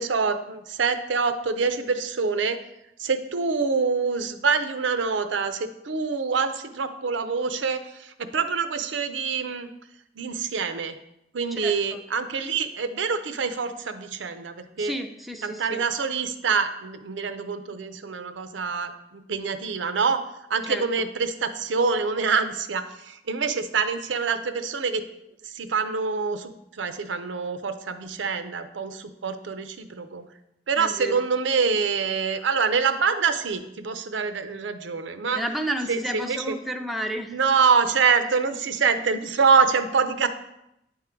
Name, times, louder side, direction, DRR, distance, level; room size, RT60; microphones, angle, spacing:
voice 1, 0.0-2.6 3.0-9.7 10.2-10.9 11.3-14.9 15.4-20.2 20.5-25.0 25.5-30.2 30.7-35.4 35.9-36.5 37.3-40.3, right 5 dB, 90° right, 10 dB, 0.6 m, -25 dB
voice 2, 11.5-12.0 14.8-15.8 20.7-21.1 30.8-31.3 35.3-37.3, right 1 dB, ahead, 3 dB, 0.5 m, -32 dB
9.0 x 3.7 x 4.4 m, 0.83 s
head